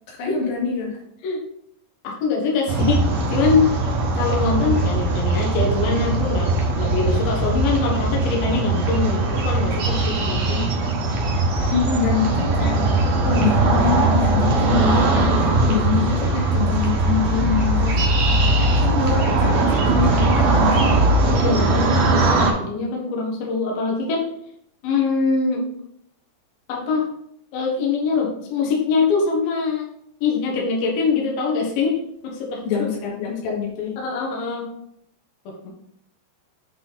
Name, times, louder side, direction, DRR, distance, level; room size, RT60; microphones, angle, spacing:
voice 1, 0.1-1.0 11.7-18.0 18.6-21.0 32.6-34.0, left 6 dB, 85° left, -4 dB, 4.3 m, -25 dB
voice 2, 2.0-3.7 4.2-10.6 21.3-22.3 22.6-24.3 24.8-25.6 26.7-27.1 27.5-29.9 30.2-32.7 34.0-34.6 35.5-35.7, left 4 dB, 65° left, -1 dB, 2.8 m, -23 dB
sound 1, 2.7-22.5, right 2 dB, 70° right, 1.6 m, -20 dB
8.2 x 4.3 x 3.9 m, 0.72 s
omnidirectional pair, 5.2 m